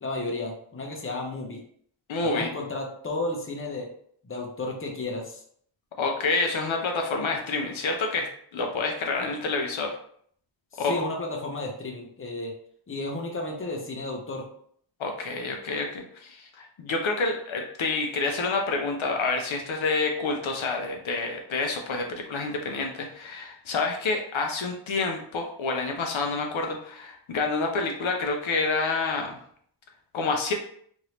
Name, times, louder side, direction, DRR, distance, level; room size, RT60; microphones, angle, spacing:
voice 1, 0.0-1.6 2.2-3.9 4.2-5.4 10.7-12.5 12.9-14.5, left 2 dB, 25° left, 0 dB, 0.7 m, -33 dB
voice 2, 2.1-2.5 6.0-9.9 10.8-11.1 15.0-29.4 30.1-30.5, left 3 dB, 70° left, 3 dB, 0.6 m, -28 dB
2.9 x 2.6 x 3.1 m, 0.63 s
wide cardioid pair, 85°, 48 cm